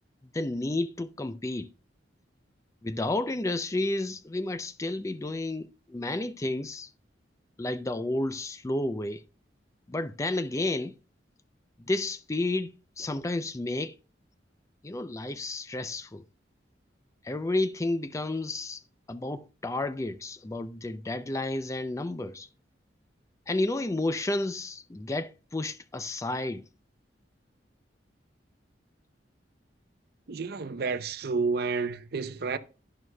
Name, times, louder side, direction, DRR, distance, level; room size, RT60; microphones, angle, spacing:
voice 1, 0.3-1.7 2.8-6.9 7.6-9.2 9.9-11.0 11.8-13.9 14.8-16.2 17.2-18.8 19.1-22.5 23.5-26.6, left 2 dB, 15° left, 0.4 m, -31 dB
voice 2, 30.3-32.6, right 4 dB, 60° right, 0.6 m, -30 dB
11.0 x 11.0 x 2.2 m
head